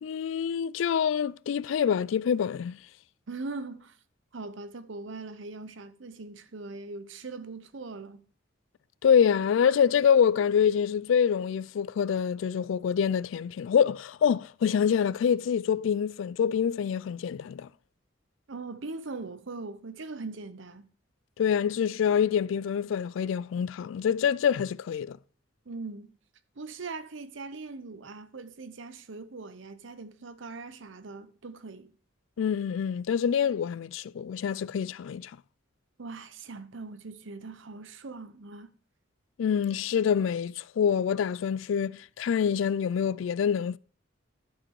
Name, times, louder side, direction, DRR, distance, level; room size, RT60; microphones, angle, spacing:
voice 1, 0.0-2.8 9.0-17.7 21.4-25.2 32.4-35.3 39.4-43.8, left 7 dB, 70° left, 0.3 m, -26 dB
voice 2, 3.3-4.0 4.3-8.2 18.5-20.9 25.7-26.1 26.6-31.9 36.0-38.7, right 3 dB, 70° right, 0.8 m, -41 dB
11.5 x 5.1 x 4.6 m
head